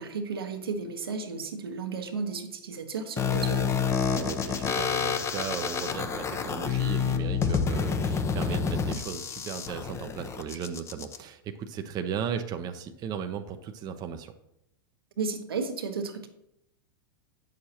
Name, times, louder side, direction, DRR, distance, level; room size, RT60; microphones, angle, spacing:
voice 1, 0.0-3.7 15.2-16.3, right 4 dB, 80° right, 5 dB, 1.1 m, -33 dB
sound 1, 3.2-11.2, left 6 dB, 25° left, 0.7 m, -28 dB
voice 2, 4.1-14.3, right 7 dB, 35° right, 7 dB, 0.6 m, -36 dB
8.6 x 6.4 x 2.9 m, 0.80 s
hypercardioid pair, 100°, 12 cm